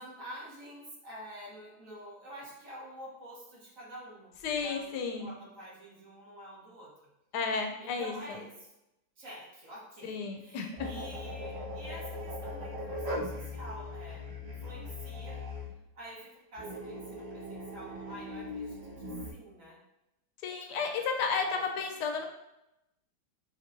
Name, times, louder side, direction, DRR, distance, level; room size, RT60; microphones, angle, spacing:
voice 1, 0.0-6.9 7.8-8.7 9.2-15.4 15.9-19.8 20.7-21.8, equal, 50° right, -5 dB, 1.6 m, -48 dB
voice 2, 4.4-5.3 7.3-8.4 10.0-10.9 20.4-22.3, left 5 dB, 80° left, 4 dB, 1.1 m, -33 dB
sound 1, 10.8-15.8 16.6-19.3, left 1 dB, 25° right, 1.6 m, -39 dB
6.6 x 2.9 x 2.6 m, 0.89 s
omnidirectional pair, 1.8 m